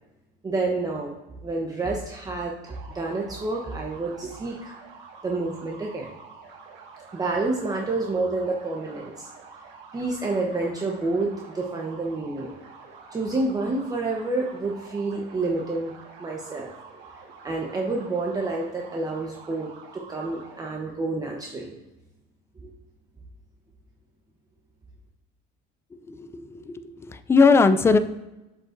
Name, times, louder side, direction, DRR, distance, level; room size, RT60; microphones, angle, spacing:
voice 1, 0.4-1.1 1.4-4.7 5.2-6.1 7.1-9.3 9.9-12.5 13.1-15.9 16.2-16.7 17.4-21.7 22.6-22.7, right 3 dB, 20° right, -1 dB, 0.8 m, -29 dB
sound 1, 2.6-20.7, right 5 dB, 60° right, 1.6 m, -47 dB
voice 2, 26.1-26.8 27.0-28.0, left 4 dB, 15° left, 11 dB, 0.3 m, -19 dB
7.2 x 5.1 x 2.5 m, 1.0 s
cardioid pair, 130°, 20 cm